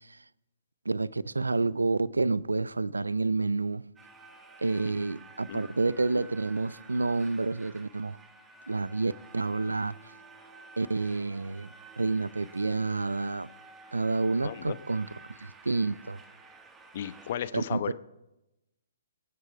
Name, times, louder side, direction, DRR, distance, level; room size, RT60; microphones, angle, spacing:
voice 1, 0.9-3.9 4.6-8.2 8.7-10.0 10.8-11.7 12.0-13.5 13.9-15.1 15.4-16.2 17.5-17.8, right 3 dB, 80° right, 0.5 m, -29 dB
sound 1, 4.0-17.3, right 3 dB, 10° right, 1.3 m, -52 dB
voice 2, 14.4-14.8 16.9-17.9, left 10 dB, 45° left, 0.9 m, -34 dB
26.5 x 9.0 x 4.8 m
figure-of-eight pair, 125°, 0 cm